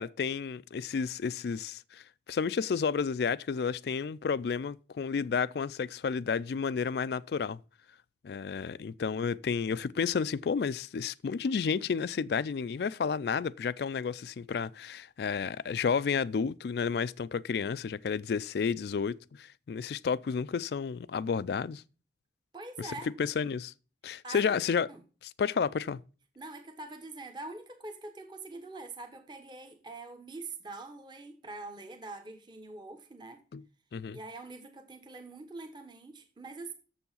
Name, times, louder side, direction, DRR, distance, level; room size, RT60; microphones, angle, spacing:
voice 1, 0.0-7.6 8.2-21.8 22.8-22.9 23.2-23.7 24.0-24.9 25.2-26.0 33.5-33.6 33.9-34.2, left 6 dB, 60° left, 0.3 m, -31 dB
voice 2, 22.5-23.1 24.2-24.6 24.9-25.0 26.4-33.4 34.1-36.7, right 3 dB, 25° right, 1.0 m, -44 dB
7.1 x 7.0 x 5.5 m
head